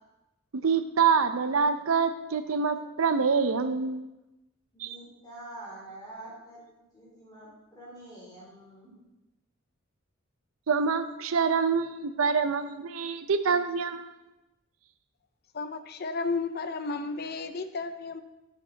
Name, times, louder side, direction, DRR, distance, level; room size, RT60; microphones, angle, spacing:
voice 1, 0.5-4.0 4.8-5.0 10.7-14.1, right 5 dB, 90° right, 0.6 m, -26 dB
voice 2, 4.7-6.6 6.9-9.0, right 1 dB, 20° left, 3.3 m, -46 dB
voice 3, 15.5-18.2, left 4 dB, 50° left, 0.6 m, -33 dB
8.8 x 8.6 x 3.9 m
head